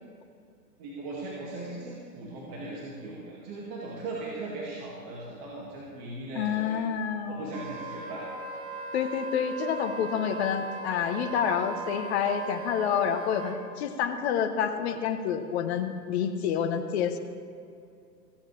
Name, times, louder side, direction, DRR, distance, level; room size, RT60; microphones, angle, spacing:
voice 1, 0.8-6.8 7.3-8.3, right 2 dB, 30° right, -5 dB, 2.4 m, -38 dB
voice 2, 6.4-7.5 8.9-17.2, left 7 dB, 40° left, 7 dB, 1.2 m, -28 dB
Wind instrument woodwind instrument, 7.5-13.6, right 3 dB, 75° right, 3.4 m, -39 dB
15.5 x 15.5 x 3.4 m, 2.4 s
hypercardioid pair, 125°, 50 cm